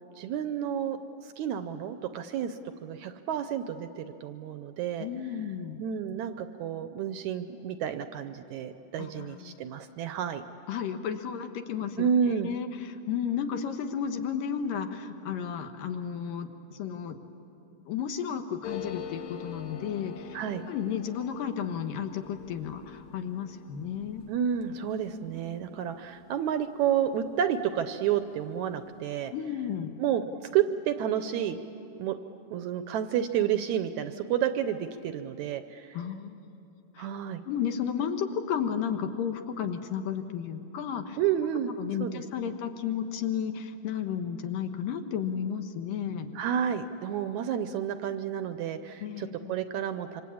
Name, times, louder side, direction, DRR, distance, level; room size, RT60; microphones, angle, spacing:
voice 1, 0.2-1.0 1.2-5.1 5.8-10.4 12.0-12.5 20.3-20.6 24.3-29.3 30.0-30.2 30.5-31.6 32.0-32.2 32.5-36.0 37.0-37.4 41.2-42.6 46.3-50.2, right 9 dB, 75° right, 9 dB, 1.8 m, -30 dB
voice 2, 5.0-5.8 9.0-9.6 10.7-17.2 17.9-20.4 20.7-24.3 25.7-26.2 29.3-29.9 35.9-36.4 37.0-37.1 37.5-41.2 41.8-46.3 49.0-49.6, left 8 dB, 80° left, 7 dB, 2.9 m, -33 dB
sound 1, 18.6-27.8 28.1-28.2 28.4-29.0, left 8 dB, 65° left, 2.6 m, -45 dB
26.0 x 25.0 x 8.5 m, 2.9 s
omnidirectional pair, 3.9 m